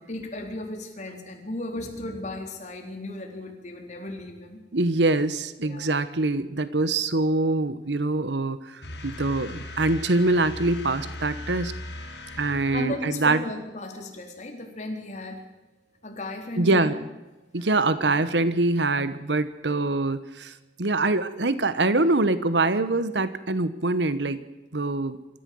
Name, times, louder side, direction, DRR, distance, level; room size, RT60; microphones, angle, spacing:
voice 1, 0.1-4.6 5.6-5.9 12.7-15.4 16.0-16.9 17.6-17.7 18.1-18.2, left 1 dB, 45° left, 3 dB, 4.1 m, -35 dB
voice 2, 4.7-11.7 12.4-13.4 16.6-16.9 17.5-24.4 24.7-25.2, right 2 dB, 90° right, 14 dB, 1.2 m, -24 dB
sound 1, 8.8-13.5, left 1 dB, 75° left, 6.5 m, -38 dB
25.0 x 14.5 x 7.8 m, 1.1 s
head